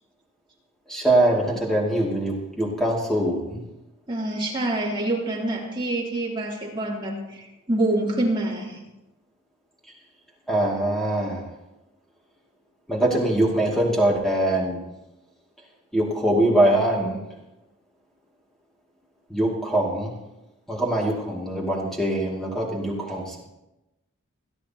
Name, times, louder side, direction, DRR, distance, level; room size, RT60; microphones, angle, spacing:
voice 1, 0.9-3.6 10.5-11.4 12.9-14.8 15.9-17.2 19.3-20.1 20.7-23.5, right 1 dB, ahead, -3 dB, 2.5 m, -23 dB
voice 2, 4.1-8.8, right 1 dB, 20° right, -4 dB, 3.1 m, -26 dB
28.0 x 9.9 x 2.9 m, 0.96 s
head